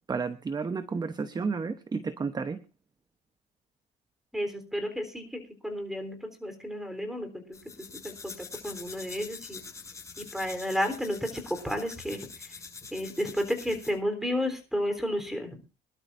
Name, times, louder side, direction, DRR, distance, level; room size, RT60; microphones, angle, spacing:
voice 1, 0.1-2.6, right 5 dB, 25° right, 11 dB, 0.9 m, -31 dB
voice 2, 4.3-7.6 7.9-8.3 8.6-9.6 10.2-12.3 12.9-15.6, equal, ahead, 8 dB, 3.7 m, -32 dB
sound 1, 7.5-14.0, left 4 dB, 15° left, 7.5 m, -45 dB
24.5 x 12.0 x 2.6 m, 0.29 s
cardioid pair, 110°, 17 cm